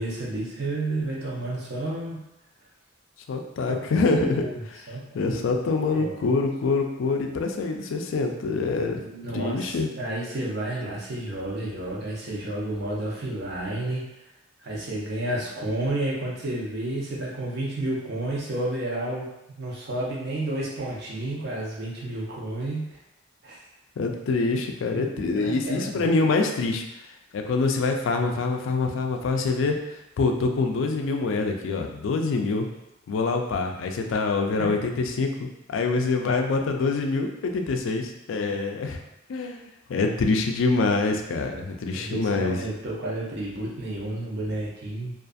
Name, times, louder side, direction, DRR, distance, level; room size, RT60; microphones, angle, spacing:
voice 1, 0.0-2.2 3.7-3.8 4.1-4.5 4.9-5.5 5.9-6.4 9.0-14.0 14.6-22.8 23.4-23.6 24.9-26.1 40.0-40.1 41.9-45.1, right 1 dB, 55° right, -5 dB, 0.7 m, -31 dB
voice 2, 3.3-4.4 5.1-9.0 9.3-9.9 24.0-26.8 27.3-29.8 30.2-32.7 33.1-39.0 39.3-39.6 39.9-42.6, left 3 dB, 75° left, 4 dB, 0.3 m, -25 dB
2.5 x 2.4 x 2.4 m, 0.87 s
head